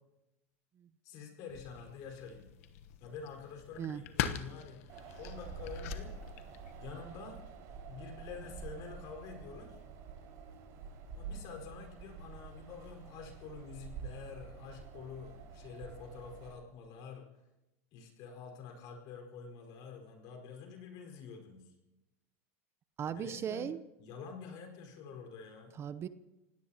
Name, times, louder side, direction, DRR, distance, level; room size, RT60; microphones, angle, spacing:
voice 1, 1.0-2.5 3.0-4.8 5.2-6.1 6.8-7.4 7.9-9.8 11.1-17.3 17.9-21.7 23.0-23.7 24.0-25.7, left 5 dB, 55° left, 2 dB, 4.7 m, -48 dB
sound 1, 1.5-6.9, left 10 dB, 70° left, 1.1 m, -42 dB
Wind, 4.9-16.5, right 5 dB, 55° right, 5.2 m, -48 dB
voice 2, 23.0-23.9 25.7-26.1, right 8 dB, 35° right, 14 dB, 0.7 m, -37 dB
28.0 x 17.0 x 2.9 m, 0.97 s
supercardioid pair, 110°, 8 cm